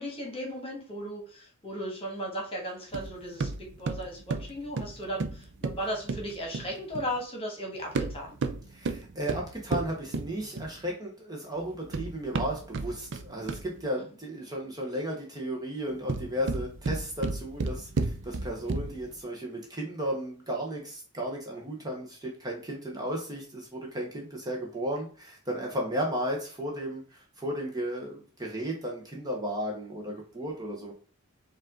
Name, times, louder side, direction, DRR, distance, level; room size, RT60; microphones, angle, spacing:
voice 1, 0.0-8.3 14.0-14.1, equal, 25° left, 0 dB, 1.5 m, -36 dB
sound 1, 2.9-7.1 7.8-10.9 11.6-13.8 15.9-19.1, right 3 dB, 55° right, 0.5 m, -33 dB
voice 2, 8.7-30.9, equal, 20° right, -1 dB, 1.0 m, -34 dB
5.1 x 2.6 x 3.7 m, 0.41 s
head